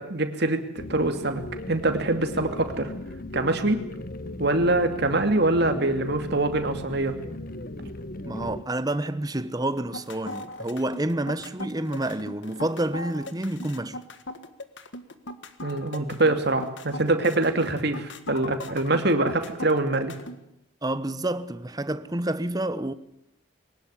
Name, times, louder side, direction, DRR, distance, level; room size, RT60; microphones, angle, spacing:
voice 1, 0.0-2.9 3.3-3.8 4.4-7.2 15.6-20.1, right 2 dB, 55° right, 2.6 m, -24 dB
sound 1, 0.8-8.6, left 1 dB, 45° left, 1.1 m, -37 dB
voice 2, 8.2-14.0 20.8-22.9, right 1 dB, 20° right, 0.9 m, -29 dB
sound 2, 9.8-20.4, left 2 dB, 65° left, 1.7 m, -38 dB
22.0 x 19.0 x 9.9 m
head